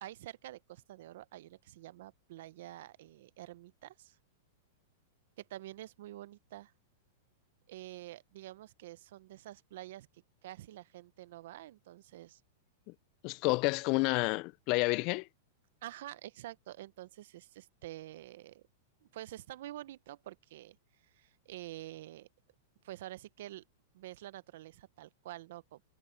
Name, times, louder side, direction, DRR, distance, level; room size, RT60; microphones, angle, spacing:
voice 1, 0.0-4.2 5.4-6.7 7.7-12.4 15.8-18.6 19.1-20.8 21.1-22.3 22.8-23.6 23.9-25.8, right 15 dB, 65° right, 0.7 m, -48 dB
voice 2, 13.2-15.3, left 27 dB, 45° left, 0.3 m, -29 dB
hypercardioid pair, 140°, 0 cm